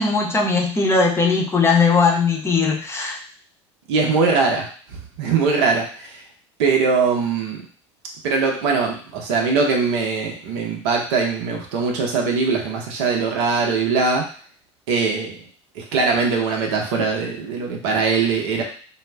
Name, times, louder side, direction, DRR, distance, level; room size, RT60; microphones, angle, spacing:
voice 1, 0.0-3.2, left 4 dB, 15° left, 0 dB, 0.6 m, -19 dB
voice 2, 3.9-6.2 6.6-7.6 8.2-14.3 14.9-15.4 15.7-18.6, right 4 dB, 70° right, 1 dB, 0.7 m, -21 dB
2.3 x 2.0 x 3.3 m, 0.43 s
hypercardioid pair, 70°, 15 cm